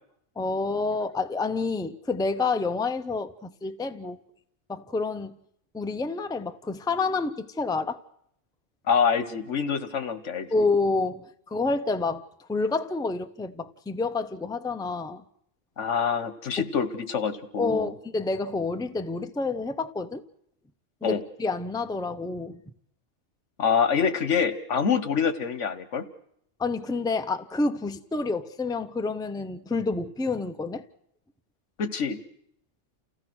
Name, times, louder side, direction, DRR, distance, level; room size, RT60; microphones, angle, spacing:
voice 1, 0.4-4.2 4.7-5.3 5.7-8.0 10.5-15.2 17.6-20.2 21.0-22.6 26.6-30.8, left 3 dB, 5° left, 0.6 m, -28 dB
voice 2, 8.9-10.5 15.8-17.9 21.0-21.2 23.6-26.1 31.8-32.2, left 6 dB, 80° left, 1.5 m, -26 dB
29.0 x 15.5 x 6.2 m
omnidirectional pair, 1.2 m